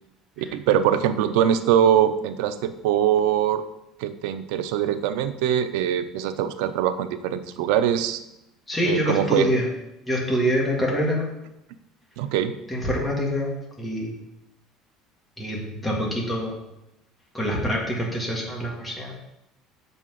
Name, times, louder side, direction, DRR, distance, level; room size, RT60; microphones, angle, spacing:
voice 1, 0.4-3.6 4.0-8.2 8.8-9.5 12.2-12.6, right 9 dB, 85° right, 10 dB, 0.6 m, -22 dB
voice 2, 8.7-9.7 10.1-11.3 12.7-14.2 15.4-16.5 17.3-19.1, equal, 5° left, -3 dB, 1.7 m, -25 dB
6.6 x 5.5 x 6.2 m, 0.88 s
cardioid pair, 175°, 0 cm